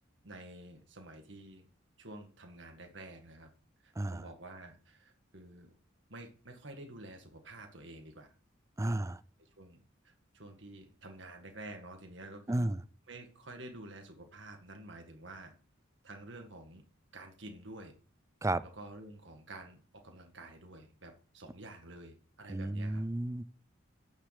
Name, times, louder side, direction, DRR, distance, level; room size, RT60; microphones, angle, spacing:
voice 1, 0.2-1.7 2.0-3.5 3.8-5.7 6.1-8.3 8.8-9.1 9.4-12.7 13.1-15.5 16.0-16.8 17.1-17.9 18.6-23.0, right 2 dB, 65° right, 1.9 m, -50 dB
voice 2, 8.8-9.2 12.5-12.8 18.4-18.6 22.5-23.4, right 1 dB, 15° right, 0.4 m, -32 dB
9.3 x 6.6 x 6.5 m
head